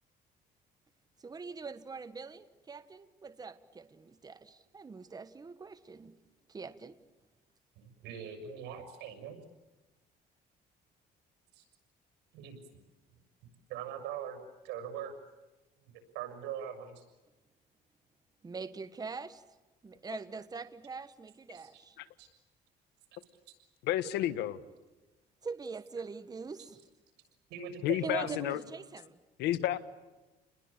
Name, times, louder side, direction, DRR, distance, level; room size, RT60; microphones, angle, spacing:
voice 1, 1.2-6.2 6.5-7.0 18.4-19.4 19.8-22.0 25.4-26.8 28.0-29.2, right 4 dB, 20° right, 11 dB, 1.4 m, -43 dB
voice 2, 7.8-9.4 11.5-11.6 12.3-12.5 13.7-14.4 14.6-15.1 15.8-17.0 21.5-21.8 22.2-22.3 26.6-26.7 27.5-28.4, right 8 dB, 90° right, 7 dB, 6.6 m, -42 dB
voice 3, 23.8-24.6 27.8-28.6 29.4-29.8, left 13 dB, 85° left, 13 dB, 1.6 m, -31 dB
30.0 x 21.0 x 8.7 m, 1.1 s
cardioid pair, 110°, 17 cm